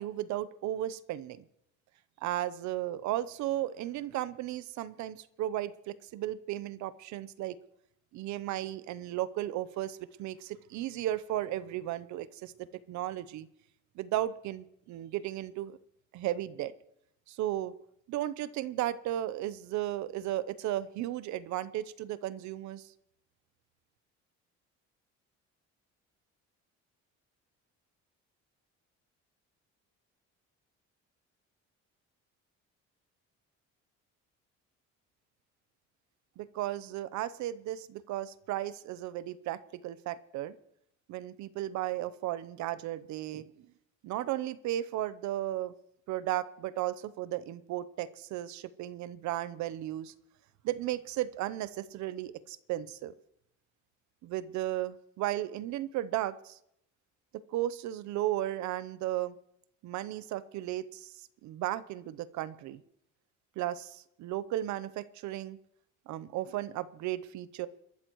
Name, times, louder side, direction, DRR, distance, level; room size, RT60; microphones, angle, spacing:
voice 1, 0.0-1.4 2.2-7.6 8.1-13.5 14.0-15.8 16.1-16.7 17.3-17.7 18.1-22.9 36.4-40.6 41.1-43.5 44.0-45.7 46.1-50.1 50.6-53.1 54.2-56.6 57.5-59.4 59.8-61.1 61.4-62.8 63.6-65.6 66.1-67.7, right 13 dB, 75° right, 16 dB, 0.8 m, -35 dB
29.5 x 12.5 x 3.1 m, 0.77 s
cardioid pair, 150°, 29 cm